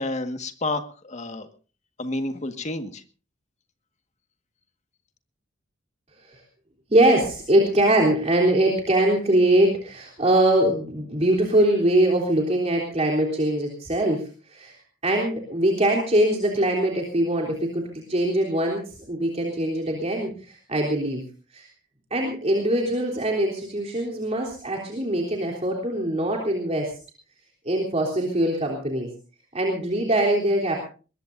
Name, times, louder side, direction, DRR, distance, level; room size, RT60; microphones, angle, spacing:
voice 1, 0.0-1.5 2.0-3.0, left 2 dB, 40° left, 8 dB, 1.7 m, -30 dB
voice 2, 6.9-14.8 15.0-21.2 21.5-21.7 22.1-26.9 27.7-29.1 29.5-30.8, right 1 dB, 35° right, -1 dB, 3.6 m, -22 dB
22.0 x 20.5 x 2.6 m, 0.36 s
head